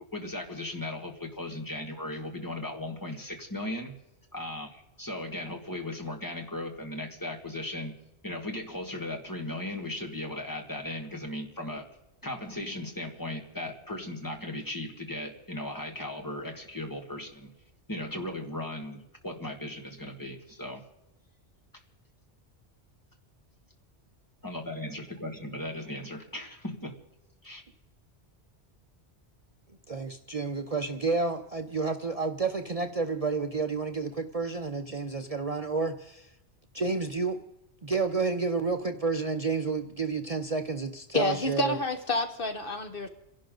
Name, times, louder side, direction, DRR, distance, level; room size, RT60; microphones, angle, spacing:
voice 1, 0.1-3.9 4.3-8.0 8.2-11.9 12.2-17.5 17.9-20.8 24.4-26.9 27.4-27.6, left 1 dB, 20° left, 2 dB, 2.1 m, -37 dB
voice 2, 29.9-36.3 36.7-37.4 37.8-41.7, right 4 dB, 35° right, 6 dB, 0.8 m, -30 dB
voice 3, 41.1-43.1, left 2 dB, 55° left, 7 dB, 1.3 m, -29 dB
29.5 x 11.5 x 3.9 m, 0.95 s
omnidirectional pair, 1.1 m